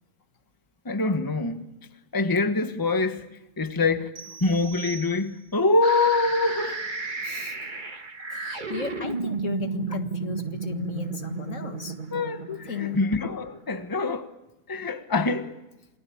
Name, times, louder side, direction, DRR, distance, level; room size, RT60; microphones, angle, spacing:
voice 1, 0.8-1.7 2.1-4.1 4.4-6.9 12.1-12.4 12.8-14.3 14.7-15.6, left 3 dB, 15° left, 1.2 m, -25 dB
sound 1, 4.2-5.7, right 7 dB, 85° right, 2.6 m, -43 dB
sound 2, 5.8-13.7, right 4 dB, 35° right, 1.8 m, -33 dB
voice 2, 7.2-7.6 8.3-12.0 12.5-13.0, left 7 dB, 60° left, 2.0 m, -35 dB
27.5 x 19.5 x 8.5 m
omnidirectional pair, 1.5 m